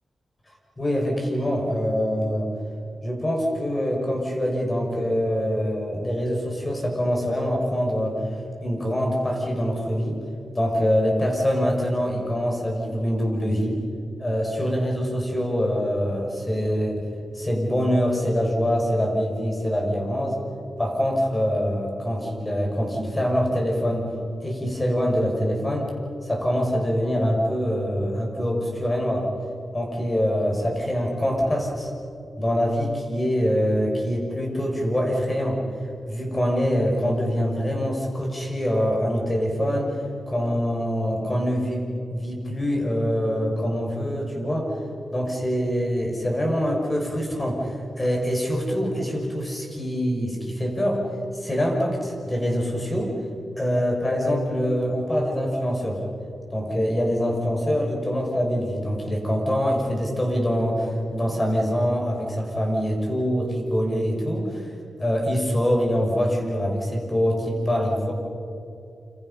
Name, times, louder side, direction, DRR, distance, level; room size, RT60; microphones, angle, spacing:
voice 1, 0.8-2.5 3.0-8.2 8.6-10.2 10.5-13.8 14.2-17.0 17.3-20.4 20.8-24.1 24.4-25.9 26.2-29.3 29.7-31.9 32.4-35.6 36.0-40.0 40.3-44.7 45.1-51.0 51.3-53.1 53.6-56.0 56.5-64.7 65.0-68.1, equal, 20° left, 0 dB, 6.2 m, -24 dB
28.5 x 27.5 x 5.8 m, 2.8 s
cardioid pair, 80°, 0 cm